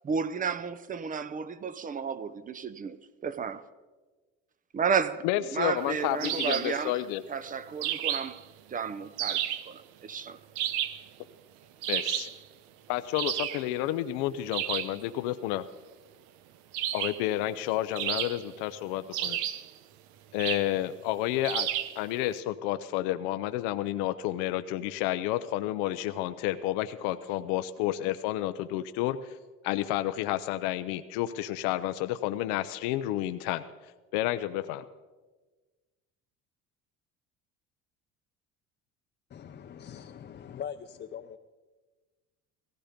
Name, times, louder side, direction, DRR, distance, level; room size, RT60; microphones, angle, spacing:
voice 1, 0.0-3.0 3.2-3.6 4.7-5.2 5.5-7.0 7.3-8.4 8.7-10.4, right 6 dB, 30° right, 0.7 m, -32 dB
voice 2, 5.2-7.2 11.9-12.3 12.9-15.6 16.9-19.4 20.3-21.7 22.0-29.4 29.6-33.6 34.1-34.8, left 14 dB, 90° left, 0.7 m, -30 dB
sound 1, 6.2-6.8 7.8-8.4 9.2-9.7 10.6-11.1 11.8-12.4 13.1-13.7 14.5-15.0 16.7-17.3 18.0-18.6 19.1-19.7 20.4-20.7 21.4-22.0, right 11 dB, 85° right, 0.9 m, -31 dB
voice 3, 39.3-41.4, left 8 dB, 35° left, 0.7 m, -42 dB
17.0 x 15.5 x 5.1 m
cardioid pair, 120°, 30 cm